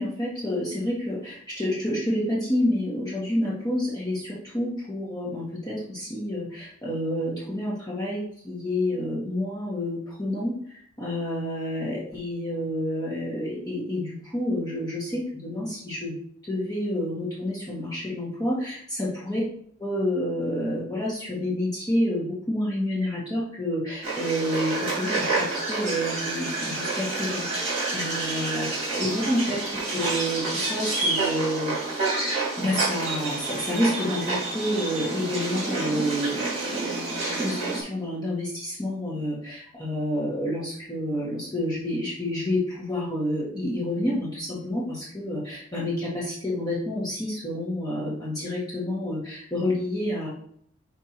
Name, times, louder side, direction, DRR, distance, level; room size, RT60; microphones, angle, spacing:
voice 1, 0.0-16.1 16.4-19.4 19.8-32.1 32.6-50.3, left 1 dB, 20° left, -6 dB, 1.6 m, -29 dB
sound 1, 24.0-37.8, right 3 dB, 30° right, 2.4 m, -29 dB
5.5 x 4.6 x 4.4 m, 0.64 s
head